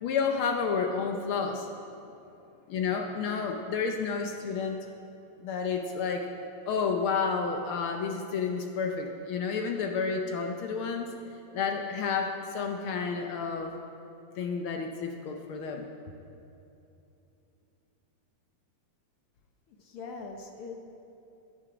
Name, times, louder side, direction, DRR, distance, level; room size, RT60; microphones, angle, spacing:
voice 1, 0.0-1.7 2.7-4.8 5.4-6.3 6.7-11.1 11.5-13.8 14.4-15.8, left 5 dB, 90° left, 3 dB, 1.1 m, -30 dB
voice 2, 19.7-20.8, left 4 dB, 65° left, 3 dB, 1.5 m, -42 dB
16.0 x 11.0 x 4.9 m, 2.8 s
omnidirectional pair, 3.3 m